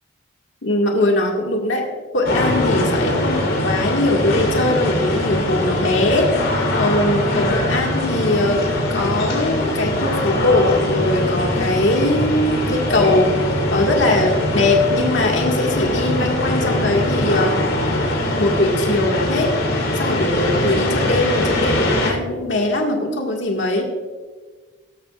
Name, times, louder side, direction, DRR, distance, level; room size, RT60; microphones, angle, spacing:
voice 1, 0.6-1.9 2.1-13.3 13.7-17.6 18.4-19.5 19.9-23.8, left 2 dB, 70° left, 0 dB, 1.9 m, -20 dB
sound 1, 2.2-22.1, left 1 dB, 85° left, 3.6 m, -22 dB
17.5 x 13.5 x 2.5 m, 1.4 s
head